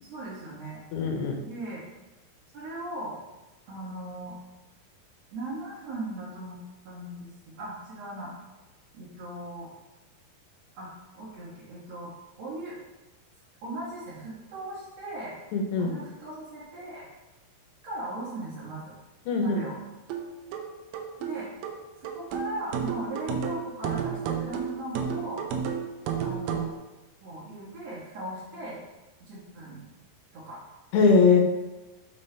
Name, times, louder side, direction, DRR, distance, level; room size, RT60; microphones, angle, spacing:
voice 1, 0.0-0.8 1.4-1.8 2.5-3.2 3.7-4.4 5.3-8.3 8.9-9.7 10.8-12.1 12.4-12.8 13.6-15.4 15.8-17.1 17.8-18.9 19.4-19.7 21.2-21.5 22.0-25.5 26.2-26.7 27.2-28.8 29.2-29.8 30.3-30.6, right 1 dB, 60° right, -8 dB, 1.9 m, -38 dB
voice 2, 0.9-1.4 15.5-15.9 19.3-19.6 30.9-31.4, left 4 dB, 90° left, 3 dB, 3.0 m, -21 dB
sound 1, 20.1-26.8, right 7 dB, 90° right, 1.9 m, -32 dB
6.5 x 5.4 x 3.3 m, 1.1 s
omnidirectional pair, 4.7 m